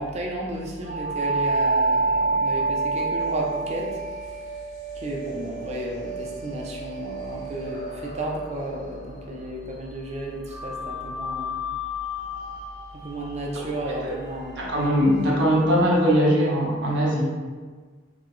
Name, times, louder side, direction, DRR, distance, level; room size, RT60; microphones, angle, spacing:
voice 1, 0.0-4.0 4.9-11.6 12.9-14.7, right 1 dB, 35° right, -2 dB, 0.6 m, -33 dB
sound 1, 0.8-9.6 10.5-15.3, right 2 dB, 50° left, 1.3 m, -29 dB
voice 2, 14.6-17.2, equal, 65° right, -4 dB, 0.9 m, -21 dB
4.0 x 3.5 x 3.1 m, 1.5 s
head